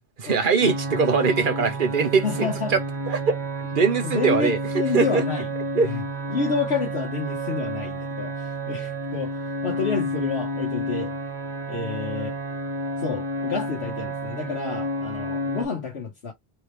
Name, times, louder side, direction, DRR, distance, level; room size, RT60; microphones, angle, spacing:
voice 1, 0.0-2.8 3.1-3.4 3.7-4.6 4.9-5.2 5.7-5.9, right 5 dB, 55° right, 1.1 m, -22 dB
sound 1, 0.6-15.6, right 1 dB, 85° right, 1.5 m, -30 dB
voice 2, 2.2-2.7 4.0-5.5 5.7-6.0 6.3-9.3 9.6-11.1 11.7-12.3 13.0-16.3, left 5 dB, 80° left, 1.4 m, -29 dB
3.7 x 3.3 x 3.1 m
omnidirectional pair, 1.1 m